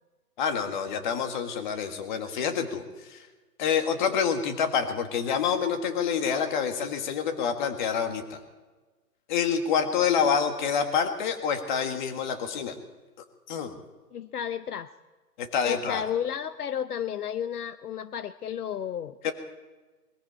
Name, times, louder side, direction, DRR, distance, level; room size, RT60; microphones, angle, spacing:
voice 1, 0.4-3.3 3.6-8.4 9.3-12.7 13.5-13.8 15.4-16.0 19.2-19.3, left 7 dB, 30° left, 7 dB, 1.6 m, -27 dB
voice 2, 14.1-14.9 15.6-19.3, left 9 dB, 65° left, 13 dB, 0.8 m, -32 dB
21.5 x 15.0 x 4.3 m, 1.3 s
hypercardioid pair, 150°, 48 cm